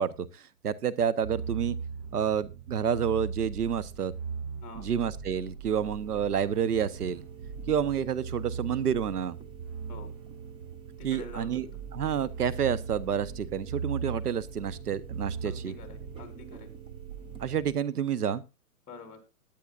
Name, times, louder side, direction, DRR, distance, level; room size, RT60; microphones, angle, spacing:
voice 1, 0.0-1.8 2.1-4.1 4.8-7.2 7.7-9.4 11.0-11.6 11.9-15.7 17.4-18.4, right 8 dB, 90° right, 16 dB, 1.1 m, -29 dB
sound 1, 1.2-17.7, right 6 dB, 25° right, 0.7 m, -39 dB
sound 2, 5.7-17.4, right 7 dB, 10° right, 1.4 m, -52 dB
voice 2, 11.0-11.6 15.4-16.7 18.9-19.2, left 4 dB, 15° left, 7 dB, 3.7 m, -46 dB
18.5 x 10.5 x 2.5 m, 0.27 s
hypercardioid pair, 145°, 44 cm